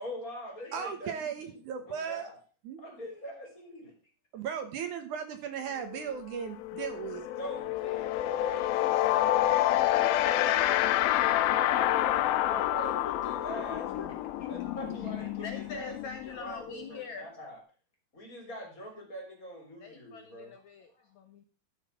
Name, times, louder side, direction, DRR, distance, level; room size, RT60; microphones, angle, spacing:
voice 1, 0.0-1.6 1.9-2.4 2.8-3.9 7.4-9.3 9.7-14.1 14.5-17.6 18.1-20.6, equal, 25° left, 1 dB, 3.7 m, -43 dB
voice 2, 0.7-2.3 2.7-2.8 4.3-7.3, right 7 dB, 65° right, 7 dB, 2.4 m, -36 dB
sound 1, 5.9-6.1 6.4-17.0, left 14 dB, 85° left, 2.5 m, -28 dB
voice 3, 12.5-13.6 13.9-14.1 14.5-15.1 15.4-17.3 19.8-21.4, left 6 dB, 65° left, 5 dB, 2.2 m, -45 dB
13.5 x 6.5 x 5.7 m, 0.37 s
omnidirectional pair, 4.1 m